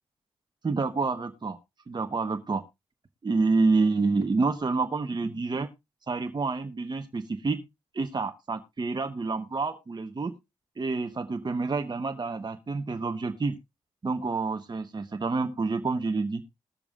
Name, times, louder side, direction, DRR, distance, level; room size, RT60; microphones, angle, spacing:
voice 1, 0.6-1.6 1.9-2.6 3.2-5.7 6.1-7.6 7.9-10.3 10.8-13.6 14.0-16.4, right 3 dB, 40° right, 6 dB, 1.1 m, -28 dB
20.0 x 6.9 x 2.4 m, 0.23 s
cardioid pair, 55°, 12 cm